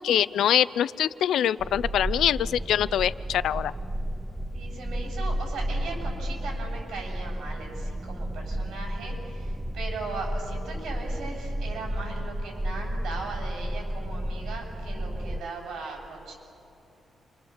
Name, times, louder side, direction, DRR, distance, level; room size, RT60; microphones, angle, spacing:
voice 1, 0.0-3.7, left 10 dB, 85° left, 18 dB, 0.5 m, -24 dB
sound 1, 1.6-15.4, equal, 5° right, 0.6 m, -32 dB
voice 2, 4.5-16.3, right 3 dB, 90° right, 0 dB, 8.0 m, -38 dB
28.5 x 26.5 x 7.3 m, 2.9 s
wide cardioid pair, 165°, 0 cm